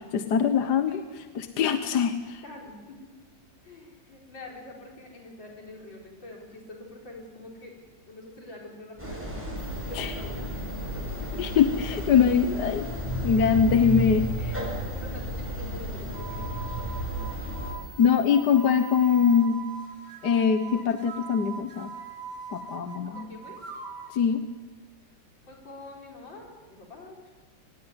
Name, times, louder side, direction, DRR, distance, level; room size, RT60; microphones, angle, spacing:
voice 1, 0.1-2.4 9.9-10.1 11.4-12.9 13.2-14.5 18.0-19.6 20.2-21.9 22.5-23.3 24.1-24.4, left 7 dB, 65° left, 9 dB, 1.6 m, -23 dB
voice 2, 2.4-3.0 3.6-7.8 8.1-9.3 9.8-11.4 13.7-14.0 14.9-16.4 23.0-23.6 25.4-27.3, left 2 dB, 80° left, 0 dB, 5.5 m, -45 dB
sound 1, 9.0-17.7, equal, 5° right, 7.0 m, -32 dB
sound 2, 9.6-19.4, right 4 dB, 80° right, 3.9 m, -51 dB
sound 3, 16.0-24.2, right 5 dB, 65° right, 3.7 m, -42 dB
24.5 x 19.5 x 9.7 m, 1.3 s
omnidirectional pair, 2.0 m